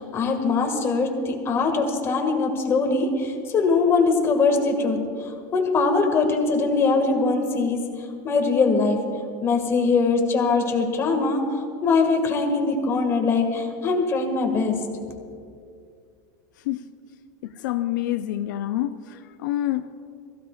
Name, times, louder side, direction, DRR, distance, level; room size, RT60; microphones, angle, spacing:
voice 1, 0.0-5.0 5.5-7.8 8.2-9.0 9.4-11.4 11.8-14.8, left 4 dB, 25° left, 3 dB, 1.8 m, -22 dB
voice 2, 17.4-19.9, left 13 dB, 80° left, 9 dB, 0.5 m, -27 dB
22.5 x 15.5 x 2.4 m, 2.3 s
supercardioid pair, 150°, 10 cm